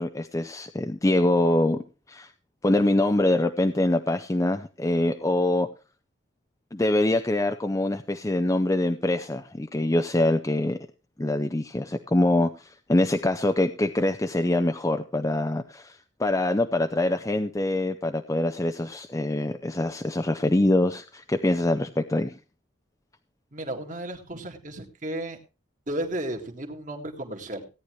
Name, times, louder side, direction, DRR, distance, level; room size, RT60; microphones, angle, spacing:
voice 1, 0.0-1.8 2.1-2.3 2.6-5.7 6.7-10.8 11.2-22.4, left 1 dB, 15° left, 7 dB, 0.5 m, -24 dB
voice 2, 23.5-25.4 25.9-27.7, right 1 dB, 40° right, 3 dB, 2.0 m, -33 dB
17.0 x 9.9 x 3.1 m, 0.31 s
head